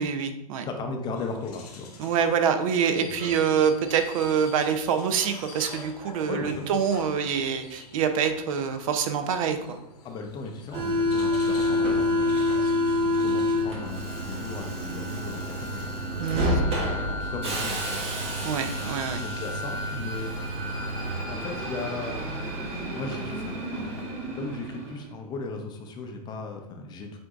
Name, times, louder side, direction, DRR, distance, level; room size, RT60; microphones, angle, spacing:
voice 1, 0.0-0.7 2.0-9.8 16.2-16.6 18.4-19.2, right 7 dB, 60° right, 8 dB, 0.6 m, -26 dB
voice 2, 0.6-2.1 3.0-3.4 6.3-6.8 10.0-12.7 13.0-16.6 17.0-18.1 19.2-20.3 21.3-22.2 22.9-27.2, left 3 dB, 20° left, 3 dB, 0.5 m, -37 dB
sound 1, 1.1-13.6, left 4 dB, 90° left, 1.2 m, -47 dB
Subway metro underground, 10.7-25.1, left 1 dB, 30° right, 1.1 m, -28 dB
7.6 x 2.6 x 2.4 m, 0.87 s
hypercardioid pair, 135°, 20 cm